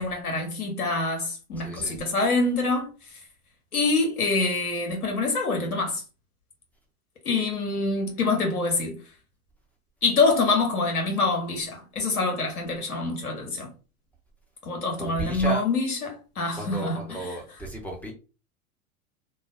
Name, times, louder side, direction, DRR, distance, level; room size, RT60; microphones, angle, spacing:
voice 1, 0.0-2.9 3.7-6.0 7.2-9.0 10.0-13.7 14.6-17.0, left 3 dB, 85° left, 1.3 m, -25 dB
voice 2, 1.6-2.0 15.0-15.6 16.6-18.1, right 2 dB, 5° left, 0.7 m, -34 dB
3.0 x 2.2 x 2.6 m
hypercardioid pair, 100°, 43 cm